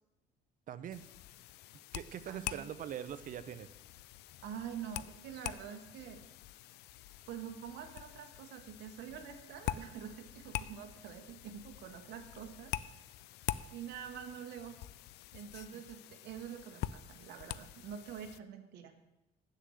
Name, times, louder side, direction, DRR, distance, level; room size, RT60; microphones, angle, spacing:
voice 1, 0.7-1.1 1.9-3.7, right 10 dB, 50° right, 13 dB, 0.7 m, -42 dB
sound 1, 0.9-18.4, left 13 dB, 80° left, 0.4 m, -45 dB
voice 2, 2.3-2.7 4.4-6.2 7.3-12.7 13.7-14.8 15.3-18.9, right 8 dB, 80° right, 5 dB, 1.2 m, -46 dB
7.8 x 6.7 x 7.8 m, 0.95 s
cardioid pair, 110°, 17 cm